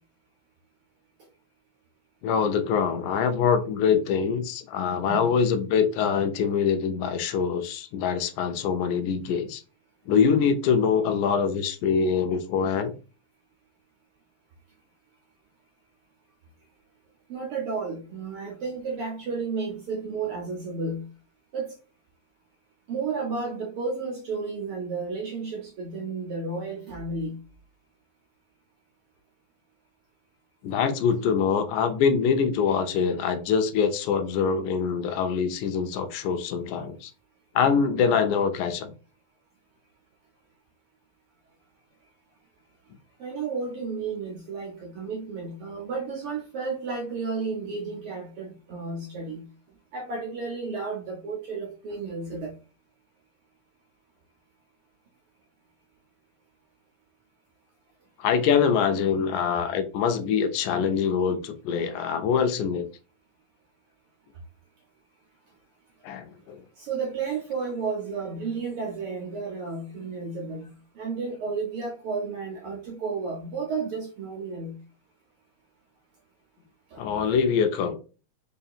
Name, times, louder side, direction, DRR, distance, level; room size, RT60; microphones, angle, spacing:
voice 1, 2.2-9.6 10.1-12.9 30.6-37.1 37.6-38.9 58.2-62.8 66.0-66.6 77.0-78.0, left 6 dB, 90° left, 8 dB, 2.1 m, -24 dB
voice 2, 17.3-21.0 21.5-21.7 22.9-27.4 43.2-49.4 49.9-52.5 66.8-74.8 76.9-77.4, right 4 dB, 70° right, -1 dB, 1.3 m, -32 dB
5.3 x 2.7 x 2.3 m, 0.34 s
omnidirectional pair, 3.4 m